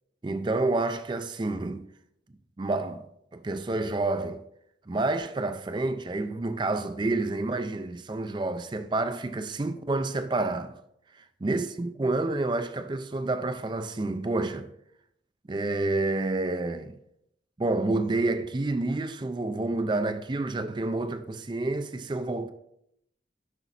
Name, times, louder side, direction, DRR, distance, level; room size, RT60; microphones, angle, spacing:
voice 1, 0.2-1.9 2.6-3.1 3.3-4.4 4.9-10.7 11.4-14.7 15.5-16.9 17.6-22.5, right 2 dB, 25° right, 0.4 m, -29 dB
9.9 x 6.0 x 4.1 m
head